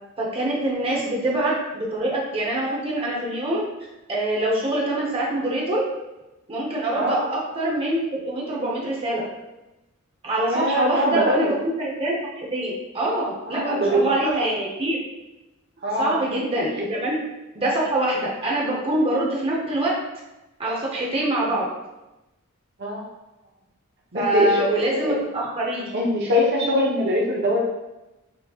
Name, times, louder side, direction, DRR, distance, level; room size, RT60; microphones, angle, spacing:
voice 1, 0.2-3.6 4.1-5.8 6.5-9.2 10.2-15.0 16.0-17.2 17.5-19.9 20.6-21.7 24.1-25.9, right 1 dB, 25° right, -4 dB, 0.9 m, -25 dB
voice 2, 6.9-7.3 10.5-11.6 13.5-14.5 15.8-16.2 22.8-23.0 24.1-24.6 24.9-25.2 25.9-27.7, equal, 55° right, -4 dB, 0.9 m, -22 dB
6.1 x 3.2 x 2.4 m, 0.98 s
head